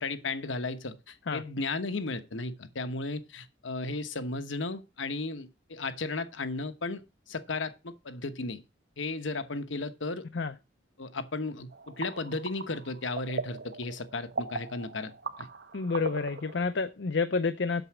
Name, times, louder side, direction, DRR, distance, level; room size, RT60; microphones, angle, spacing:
voice 1, 0.0-7.0 7.3-8.6 9.0-10.3 11.0-15.1 15.4-15.5, left 3 dB, 85° left, 1.1 m, -35 dB
sound 1, 11.7-16.7, right 3 dB, 60° right, 1.0 m, -39 dB
voice 2, 15.7-17.8, left 4 dB, 70° left, 0.6 m, -29 dB
8.1 x 6.9 x 6.0 m
head